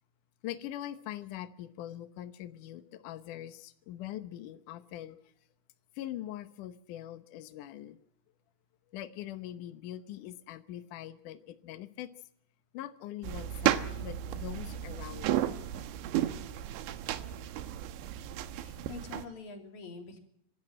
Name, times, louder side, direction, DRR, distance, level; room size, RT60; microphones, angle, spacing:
voice 1, 0.4-5.2 5.9-8.0 8.9-12.1 12.7-15.4, left 12 dB, 80° left, 11 dB, 1.8 m, -42 dB
sound 1, 13.2-19.3, right 12 dB, 90° right, 3.5 m, -33 dB
voice 2, 18.6-20.2, left 3 dB, 45° left, 4 dB, 4.2 m, -45 dB
26.0 x 12.5 x 8.9 m, 0.74 s
omnidirectional pair, 5.1 m